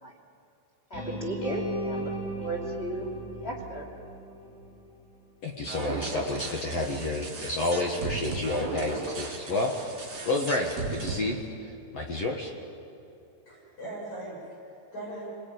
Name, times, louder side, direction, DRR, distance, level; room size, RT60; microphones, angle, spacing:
sound 1, 0.9-5.0, equal, 55° left, 10.0 m, -36 dB
voice 1, 0.9-2.1 2.4-3.1 3.4-3.8, right 2 dB, 20° left, -1 dB, 2.0 m, -35 dB
voice 2, 5.4-9.9 10.2-11.4 11.9-12.5, left 2 dB, 80° left, 1 dB, 1.4 m, -30 dB
sound 2, 5.6-11.1, right 3 dB, 25° right, 3.4 m, -36 dB
voice 3, 13.5-15.3, right 1 dB, 35° left, -6 dB, 7.8 m, -40 dB
29.0 x 20.5 x 9.5 m, 2.8 s
omnidirectional pair, 5.7 m